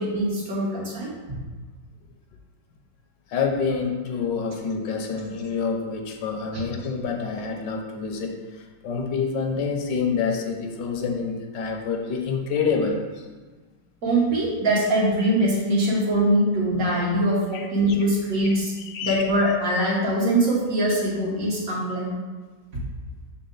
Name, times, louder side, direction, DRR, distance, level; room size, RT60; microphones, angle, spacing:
voice 1, 0.0-1.4 6.5-6.6 14.0-18.7 19.0-22.1 22.7-22.8, right 1 dB, 50° right, -5 dB, 1.7 m, -23 dB
voice 2, 3.3-13.3 17.5-18.0 18.4-18.5 18.8-19.2, left 5 dB, 75° left, 3 dB, 1.4 m, -27 dB
7.0 x 4.2 x 3.8 m, 1.4 s
omnidirectional pair, 2.0 m